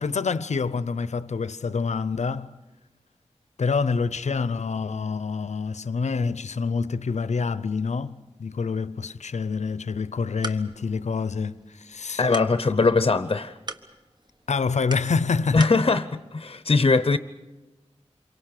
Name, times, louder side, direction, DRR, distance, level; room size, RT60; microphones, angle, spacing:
voice 1, 0.0-2.6 3.6-12.3 12.7-12.8 14.5-15.7, left 5 dB, 85° left, 0.7 m, -27 dB
sound 1, 10.0-15.8, right 2 dB, 40° right, 1.3 m, -42 dB
voice 2, 12.2-13.5 15.5-17.2, left 3 dB, 50° left, 0.7 m, -21 dB
27.0 x 24.0 x 6.7 m
wide cardioid pair, 85°, 11 cm